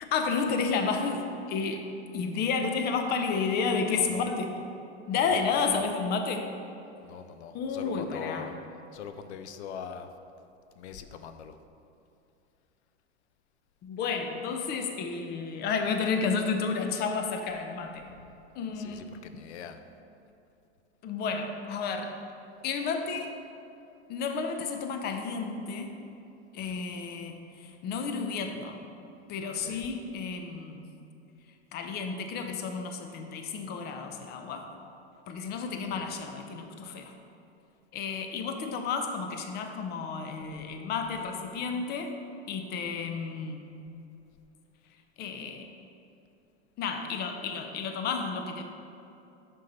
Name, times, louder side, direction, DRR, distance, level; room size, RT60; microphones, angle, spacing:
voice 1, 0.0-4.5 5.1-6.5 7.5-8.5 13.8-18.1 18.5-19.1 21.0-22.2 22.6-23.4 24.1-26.0 26.5-28.8 29.3-30.9 31.7-34.7 35.3-37.1 37.9-42.2 42.5-43.7 45.2-45.7 46.8-48.6, left 5 dB, 30° left, 5 dB, 0.6 m, -31 dB
voice 2, 3.9-4.2 5.2-5.9 7.0-8.6 8.9-10.1 10.8-11.6 18.8-19.8 26.6-26.9 29.6-29.8 35.9-36.1, left 7 dB, 90° left, 9 dB, 0.5 m, -42 dB
6.5 x 5.5 x 4.2 m, 2.7 s
supercardioid pair, 130°, 33 cm